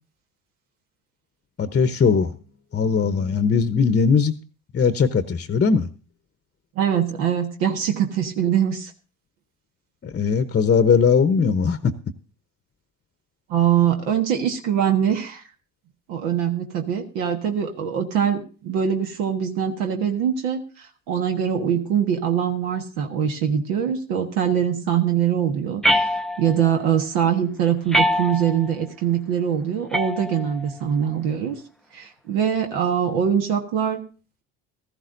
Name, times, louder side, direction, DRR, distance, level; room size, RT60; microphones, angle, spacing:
voice 1, 1.6-2.3 2.7-4.3 4.7-5.9 10.0-11.9, left 5 dB, 25° left, 10 dB, 0.9 m, -19 dB
voice 2, 6.7-8.9 13.5-15.4 16.1-31.6 31.9-34.0, right 8 dB, 75° right, 3 dB, 1.5 m, -23 dB
sound 1, 25.8-26.7 27.9-28.7 29.9-30.7, equal, ahead, 0.5 m, -23 dB
16.0 x 14.0 x 2.6 m, 0.36 s
hypercardioid pair, 70°, 39 cm